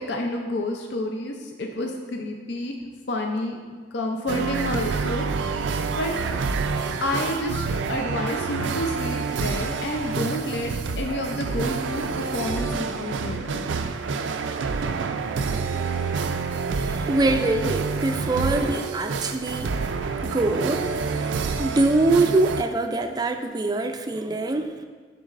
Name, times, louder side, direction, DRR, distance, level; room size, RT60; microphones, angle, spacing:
voice 1, 0.0-2.8 3.1-3.6 3.9-5.3 6.0-6.1 7.0-13.7, left 1 dB, 65° left, 3 dB, 0.5 m, -29 dB
sound 1, 4.3-22.6, right 4 dB, 90° right, 0.4 m, -28 dB
voice 2, 16.8-19.8 20.2-24.8, right 2 dB, 20° right, 6 dB, 0.3 m, -24 dB
11.5 x 4.0 x 2.5 m, 1.5 s
head